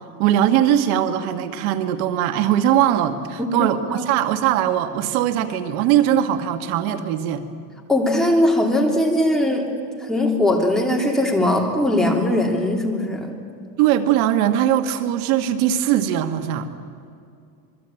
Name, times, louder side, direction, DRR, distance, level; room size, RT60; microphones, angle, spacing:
voice 1, 0.2-7.4 13.8-16.7, right 11 dB, 70° right, 8 dB, 1.9 m, -20 dB
voice 2, 3.4-4.0 7.9-9.7 10.0-13.3, left 1 dB, ahead, 0 dB, 3.0 m, -20 dB
26.5 x 22.0 x 9.0 m, 2.4 s
supercardioid pair, 155°, 44 cm